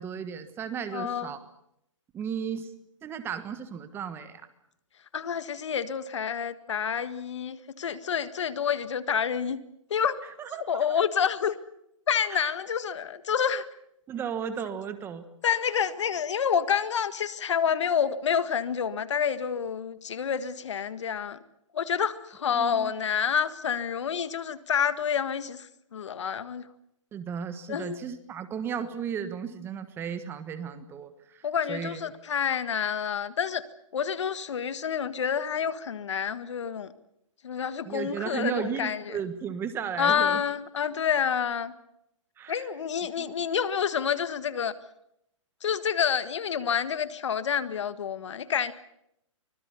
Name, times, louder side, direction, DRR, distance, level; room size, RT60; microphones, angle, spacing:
voice 1, 0.0-1.4 2.1-2.7 3.0-4.4 10.4-11.0 12.3-12.6 14.1-15.2 22.5-22.9 27.1-32.0 37.8-40.4 42.4-42.7 43.2-43.3, right 7 dB, 15° right, 11 dB, 1.3 m, -35 dB
voice 2, 0.9-1.3 5.1-9.6 9.9-10.2 10.7-11.6 12.1-13.6 15.4-21.4 21.7-26.6 27.7-28.0 31.4-33.6 33.9-36.9 37.4-39.2 40.0-41.7 42.5-44.7 45.6-48.7, left 7 dB, 60° left, 13 dB, 1.7 m, -28 dB
25.0 x 20.5 x 7.0 m, 0.77 s
hypercardioid pair, 145°, 17 cm